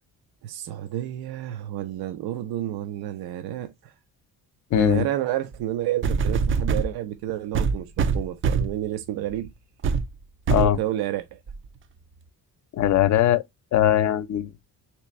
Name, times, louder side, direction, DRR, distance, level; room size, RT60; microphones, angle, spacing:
voice 1, 0.4-3.9 4.7-9.5 10.5-11.4, right 13 dB, 85° right, 0.6 m, -30 dB
voice 2, 4.7-5.1 10.5-10.8 12.7-13.4 13.7-14.5, left 11 dB, 50° left, 0.6 m, -20 dB
sound 1, 5.5-5.6 6.0-6.9 7.5-8.8 9.3-9.5 9.8-10.1 10.5-10.8 11.5-11.6, right 5 dB, 35° right, 0.4 m, -23 dB
3.3 x 3.0 x 3.0 m
cardioid pair, 135°, 37 cm